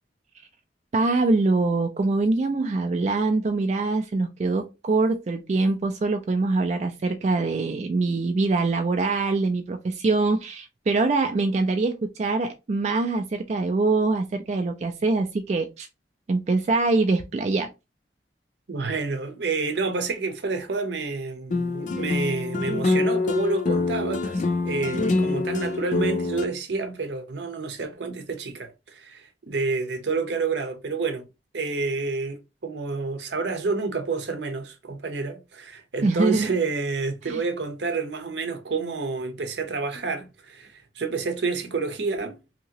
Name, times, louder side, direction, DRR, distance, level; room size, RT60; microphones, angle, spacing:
voice 1, 0.9-15.9 16.3-17.7 36.0-36.5 37.3-37.4, right 3 dB, 40° right, 0.3 m, -24 dB
voice 2, 18.7-31.3 31.5-42.4, right 4 dB, 75° right, 0.7 m, -29 dB
sound 1, 21.5-26.4, left 3 dB, 45° left, 0.4 m, -25 dB
2.8 x 2.8 x 2.8 m
head